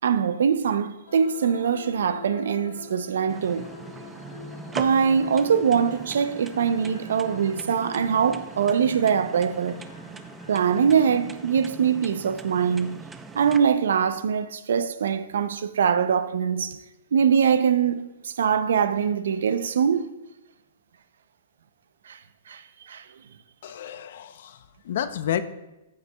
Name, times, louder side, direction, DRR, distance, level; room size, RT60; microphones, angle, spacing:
voice 1, 0.0-3.7 4.7-9.8 10.5-13.0 13.3-16.8 17.1-20.1 22.1-22.2 22.5-23.1, right 7 dB, 75° right, 0.5 m, -23 dB
sound 1, 1.1-12.0, left 5 dB, 85° left, 1.6 m, -45 dB
sound 2, 3.3-13.6, right 3 dB, 10° right, 0.5 m, -41 dB
voice 2, 23.6-25.4, left 10 dB, 65° left, 0.5 m, -30 dB
14.0 x 7.9 x 2.2 m
hypercardioid pair, 130°, 0 cm